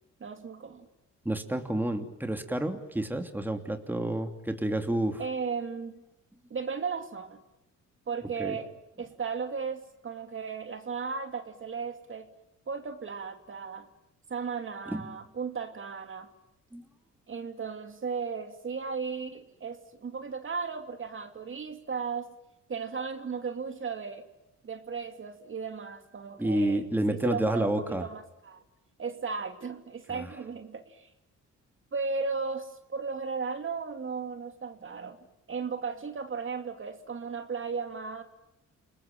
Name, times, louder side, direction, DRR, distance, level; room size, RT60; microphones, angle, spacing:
voice 1, 0.2-0.9 5.2-6.0 6.5-7.4 8.1-8.7 9.0-12.3 12.7-13.9 14.3-16.3 17.3-22.3 22.7-24.3 24.6-28.6 29.0-31.1 31.9-35.2 35.5-38.2, right 5 dB, 40° right, 6 dB, 2.7 m, -35 dB
voice 2, 1.2-5.2 8.4-8.6 14.9-15.1 16.7-16.8 26.4-28.0 30.1-30.3, right 1 dB, 5° right, 5 dB, 3.0 m, -29 dB
29.5 x 20.0 x 9.2 m, 0.90 s
cardioid pair, 90°, 30 cm